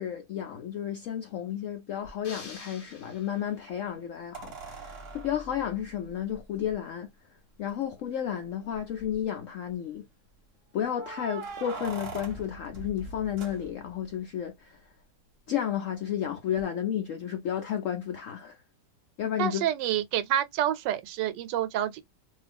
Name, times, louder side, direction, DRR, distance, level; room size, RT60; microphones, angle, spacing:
voice 1, 0.0-7.1 7.6-10.0 10.7-14.8 15.5-18.6 19.2-19.7, left 10 dB, 80° left, 0.7 m, -32 dB
sound 1, 2.0-2.1 4.3-6.7 7.7-7.8 8.1-8.2 8.7-9.2 10.9-14.1 16.6-16.7, right 3 dB, 45° right, 1.0 m, -42 dB
sound 2, 2.2-3.8, left 4 dB, 40° left, 0.9 m, -47 dB
voice 2, 19.4-22.0, right 11 dB, 85° right, 1.2 m, -28 dB
2.6 x 2.4 x 3.3 m
omnidirectional pair, 1.9 m